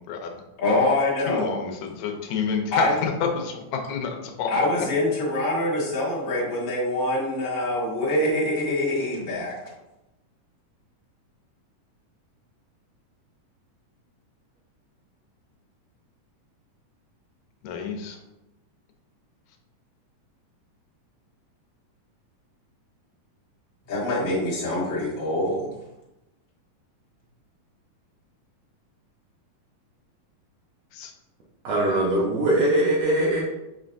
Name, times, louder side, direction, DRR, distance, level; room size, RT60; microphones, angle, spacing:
voice 1, 0.1-0.4 1.3-4.5 17.6-18.2 30.9-31.1, left 6 dB, 75° left, 4 dB, 1.8 m, -29 dB
voice 2, 0.6-1.5 2.7-2.9 4.5-9.5 23.9-25.7, left 1 dB, 55° left, -6 dB, 0.9 m, -24 dB
voice 3, 31.6-33.4, right 1 dB, 70° right, -3 dB, 1.7 m, -21 dB
5.7 x 3.3 x 2.6 m, 0.95 s
omnidirectional pair, 3.7 m